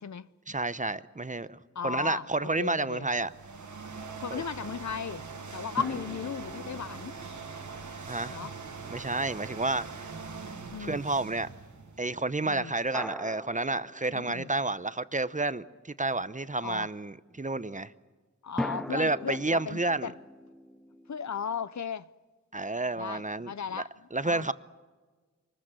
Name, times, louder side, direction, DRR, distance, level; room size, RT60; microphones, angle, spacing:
voice 1, 0.5-1.6 1.8-3.3 4.3-4.4 8.1-8.4 8.9-10.1 10.8-11.5 12.0-17.9 18.9-20.1 22.5-23.5 24.1-24.5, right 2 dB, 25° right, 0.7 m, -30 dB
voice 2, 1.7-3.1 4.2-5.3 5.5-7.2 8.3-8.5 10.7-11.0 12.4-12.7 14.1-14.5 16.6-16.9 18.4-20.1 21.1-22.1 23.0-23.9 24.2-24.5, left 7 dB, 75° left, 0.6 m, -36 dB
sound 1, 3.1-12.3, right 4 dB, 85° right, 1.5 m, -42 dB
sound 2, 5.8-9.1 12.9-14.9 18.6-21.7, equal, ahead, 0.9 m, -42 dB
24.0 x 20.0 x 7.5 m
wide cardioid pair, 50°, 29 cm